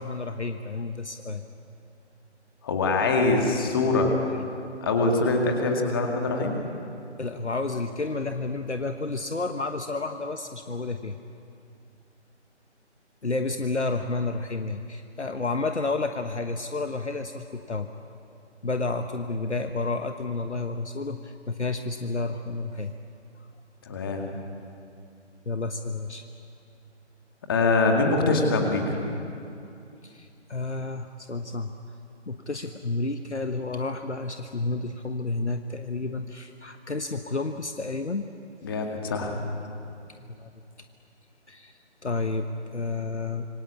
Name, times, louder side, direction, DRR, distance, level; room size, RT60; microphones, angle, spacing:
voice 1, 0.0-1.4 4.3-4.4 7.2-11.2 13.2-17.9 18.6-22.9 25.5-26.2 30.0-31.7 32.3-38.3 40.2-40.5 41.5-43.5, left 3 dB, 70° left, 7 dB, 1.3 m, -31 dB
voice 2, 2.6-4.1 4.8-6.6 23.8-24.2 27.5-29.0 38.6-39.3, left 3 dB, 20° left, 2 dB, 2.1 m, -23 dB
26.5 x 23.5 x 8.6 m, 2.6 s
figure-of-eight pair, 155°, 35 cm